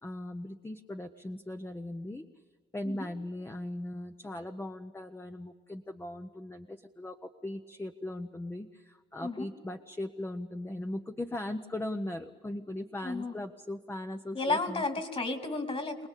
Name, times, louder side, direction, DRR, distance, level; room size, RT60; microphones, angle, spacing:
voice 1, 0.0-2.2 2.7-14.8, left 1 dB, 10° left, 6 dB, 0.9 m, -39 dB
voice 2, 13.0-13.3 14.3-16.1, left 3 dB, 30° left, 8 dB, 2.7 m, -32 dB
26.0 x 19.5 x 8.3 m, 1.4 s
cardioid pair, 115°, 19 cm